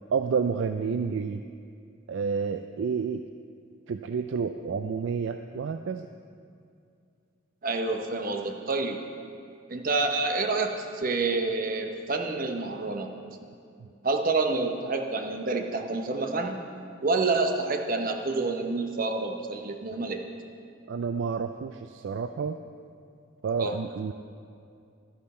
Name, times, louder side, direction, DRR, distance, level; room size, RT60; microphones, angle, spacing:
voice 1, 0.1-1.4 2.1-3.2 3.9-6.1 13.8-13.9 20.9-22.6 23.4-24.1, right 5 dB, 65° right, 8 dB, 0.3 m, -29 dB
voice 2, 7.6-9.0 9.7-13.1 14.0-16.6 17.0-20.2 23.6-23.7, right 3 dB, 45° right, 4 dB, 0.9 m, -28 dB
11.5 x 11.0 x 4.3 m, 2.4 s
head